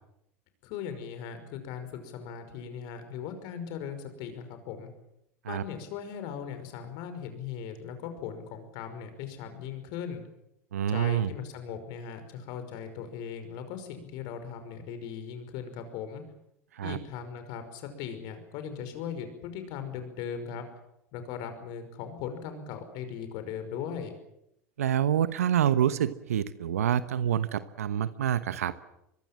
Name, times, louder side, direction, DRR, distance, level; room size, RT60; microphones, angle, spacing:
voice 1, 0.6-4.9 5.5-10.2 10.9-16.2 16.8-20.6 21.1-24.1, left 7 dB, 60° left, 9 dB, 5.6 m, -39 dB
voice 2, 10.7-11.3 16.7-17.0 24.8-28.7, right 10 dB, 80° right, 14 dB, 1.1 m, -27 dB
24.5 x 22.0 x 7.6 m, 0.81 s
hypercardioid pair, 80°, 8 cm